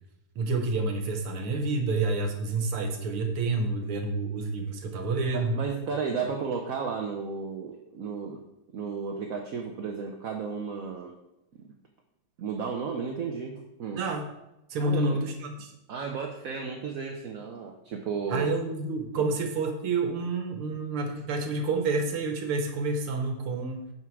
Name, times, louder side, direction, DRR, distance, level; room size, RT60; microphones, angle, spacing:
voice 1, 0.4-5.6 13.9-14.3 14.7-15.7 18.3-23.8, right 3 dB, 85° right, 5 dB, 2.1 m, -29 dB
voice 2, 5.3-8.4 8.7-11.2 12.4-14.0 14.8-15.2 15.9-18.5 19.2-19.3, right 5 dB, 60° right, 2 dB, 0.9 m, -33 dB
9.0 x 6.2 x 4.7 m, 0.89 s
omnidirectional pair, 2.3 m